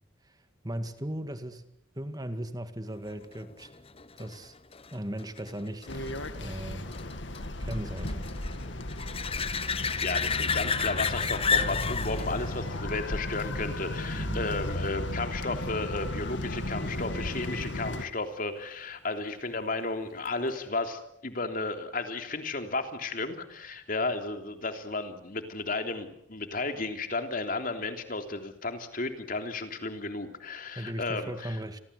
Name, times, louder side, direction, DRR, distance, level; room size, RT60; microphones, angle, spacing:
voice 1, 0.6-1.7 1.9-3.7 4.2-4.6 4.9-6.9 7.6-8.3 14.1-14.4 30.8-31.8, right 1 dB, 20° right, 2.1 m, -37 dB
sound 1, 3.3-14.6 20.3-20.4, left 6 dB, 30° left, 1.2 m, -33 dB
sound 2, 5.9-18.1, left 1 dB, 70° left, 2.2 m, -35 dB
voice 2, 10.0-31.6, left 3 dB, 45° left, 3.3 m, -33 dB
30.0 x 23.0 x 8.3 m
head